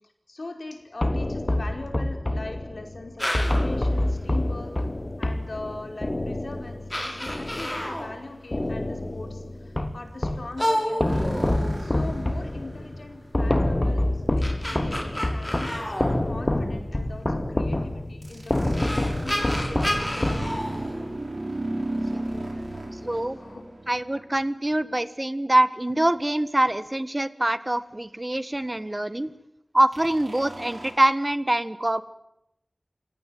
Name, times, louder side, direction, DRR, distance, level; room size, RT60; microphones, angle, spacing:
voice 1, 0.3-4.7 5.2-20.6 22.0-23.6, left 2 dB, 75° left, 5 dB, 4.6 m, -41 dB
sound 1, 1.0-8.1 8.5-10.5 11.0-20.9, left 1 dB, 35° left, 3.2 m, -27 dB
sound 2, 3.2-3.8 5.8-5.9 6.6-6.7 6.9-8.2 10.6-12.2 14.1-16.8 18.3-18.4 18.7-21.6, equal, 10° left, 6.4 m, -30 dB
sound 3, 11.1-13.2 18.2-24.6 29.9-30.9, right 1 dB, 75° right, 5.5 m, -35 dB
voice 2, 23.0-23.4 23.9-29.3 29.7-32.0, right 1 dB, 30° right, 15 dB, 1.6 m, -24 dB
28.0 x 17.5 x 9.4 m, 0.83 s
wide cardioid pair, 60°, 0 cm